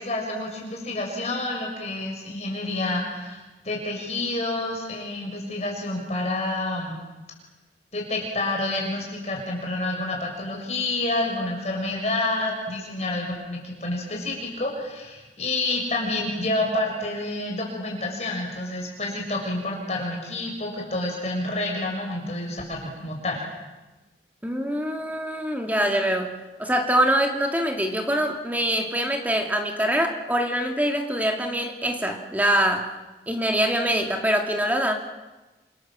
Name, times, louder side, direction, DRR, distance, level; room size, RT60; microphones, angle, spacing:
voice 1, 0.0-7.0 7.9-23.4, left 2 dB, 40° left, 0 dB, 6.7 m, -29 dB
voice 2, 24.4-26.3 26.6-32.9 33.3-34.9, equal, 10° right, 3 dB, 2.6 m, -24 dB
28.5 x 27.0 x 7.6 m, 1.1 s
head